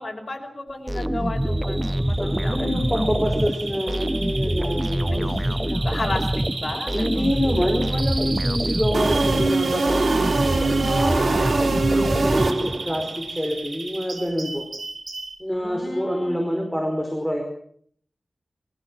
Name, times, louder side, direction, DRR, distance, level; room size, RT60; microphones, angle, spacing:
voice 1, 0.0-2.8 5.1-7.4 11.1-11.6 15.5-16.4, left 2 dB, 60° left, 2 dB, 5.6 m, -34 dB
sound 1, 0.9-13.1, right 1 dB, 15° right, 1.1 m, -25 dB
Bird vocalization bird call bird song, 1.4-15.4, right 3 dB, 65° right, 5.0 m, -35 dB
voice 2, 2.2-5.3 6.9-10.0 10.8-14.6 15.4-17.4, equal, 5° left, 2 dB, 4.8 m, -26 dB
sound 2, 8.9-13.0, right 3 dB, 85° right, 2.9 m, -23 dB
23.0 x 15.5 x 7.5 m, 0.63 s
wide cardioid pair, 60°, 0 cm